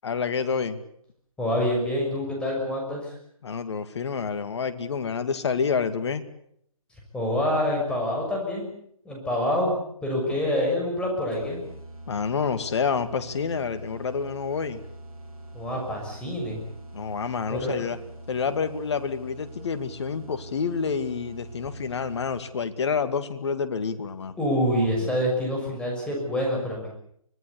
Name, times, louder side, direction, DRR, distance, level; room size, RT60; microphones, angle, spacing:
voice 1, 0.0-0.8 3.4-6.2 10.3-10.4 12.1-14.8 16.9-18.0 18.3-24.4, left 5 dB, 50° left, 11 dB, 2.2 m, -28 dB
voice 2, 1.4-3.1 7.1-8.7 9.0-9.7 10.0-11.6 15.5-16.6 17.5-17.8 24.4-26.9, left 1 dB, 5° left, -1 dB, 6.5 m, -26 dB
sound 1, 11.3-22.7, right 1 dB, 80° right, 5.5 m, -43 dB
25.0 x 19.0 x 8.4 m, 0.71 s
figure-of-eight pair, 145°, 18 cm